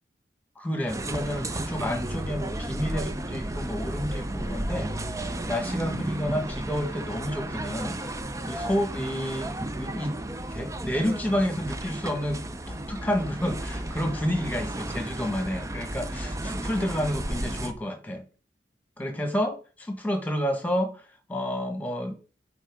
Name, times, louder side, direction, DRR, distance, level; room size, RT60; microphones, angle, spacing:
voice 1, 0.6-4.9 5.4-8.0 8.5-10.2 10.4-12.4 12.7-18.3 19.0-21.0 21.3-22.1, equal, 10° left, 1.4 m, -30 dB
sound 1, 0.9-17.7, right 1 dB, 15° right, 0.6 m, -33 dB
9.3 x 4.5 x 3.6 m
head